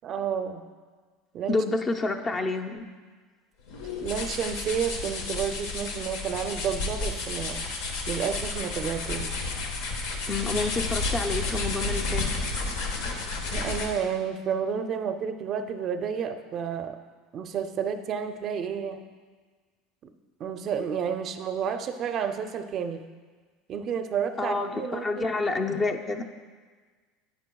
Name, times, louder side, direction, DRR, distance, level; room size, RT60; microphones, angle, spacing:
voice 1, 0.0-0.6 1.3-1.6 2.3-2.4 4.0-7.6 8.1-9.3 13.5-17.0 17.3-19.0 20.0-20.1 20.4-23.0 23.7-25.3, right 7 dB, 40° right, 8 dB, 0.5 m, -31 dB
voice 2, 1.5-2.9 10.3-12.3 24.4-26.2, left 3 dB, 20° left, 5 dB, 0.5 m, -28 dB
sound 1, 3.7-14.1, left 3 dB, 85° left, 1.2 m, -31 dB
10.5 x 9.3 x 2.3 m, 1.5 s
supercardioid pair, 140°, 0 cm